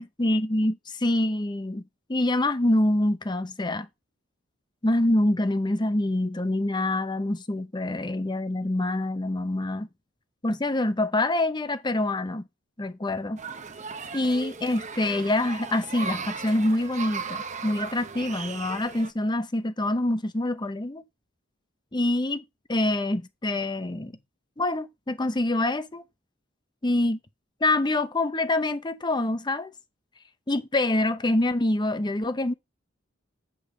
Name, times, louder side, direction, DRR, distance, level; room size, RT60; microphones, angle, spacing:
voice 1, 0.0-1.8 2.1-3.9 4.8-9.9 10.4-12.4 12.8-13.4 14.1-21.0 21.9-22.4 22.7-24.2 24.6-26.0 26.8-27.2 27.6-29.7 30.5-32.5, left 1 dB, 20° left, 0.7 m, -26 dB
sound 1, 13.4-19.1, right 5 dB, 35° right, 0.8 m, -37 dB
8.1 x 5.4 x 4.9 m
head